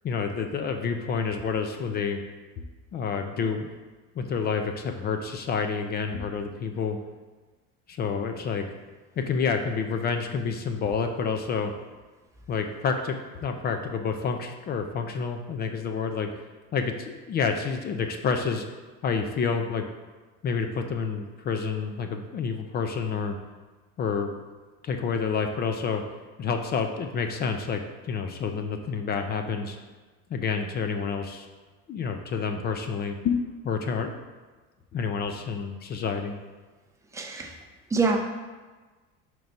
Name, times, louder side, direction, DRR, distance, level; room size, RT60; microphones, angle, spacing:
voice 1, 0.0-2.2 2.6-2.7 2.9-3.7 4.2-7.0 7.9-8.7 9.2-11.7 12.5-16.4 16.7-18.6 19.0-19.9 20.4-23.4 24.0-24.4 24.8-26.0 26.4-29.8 30.3-31.5 31.9-34.2 34.9-36.3, left 5 dB, 30° left, 6 dB, 0.4 m, -29 dB
voice 2, 37.1-37.5 37.9-38.2, right 4 dB, 10° right, 1 dB, 0.6 m, -25 dB
4.6 x 4.0 x 5.2 m, 1.3 s
cardioid pair, 140°, 32 cm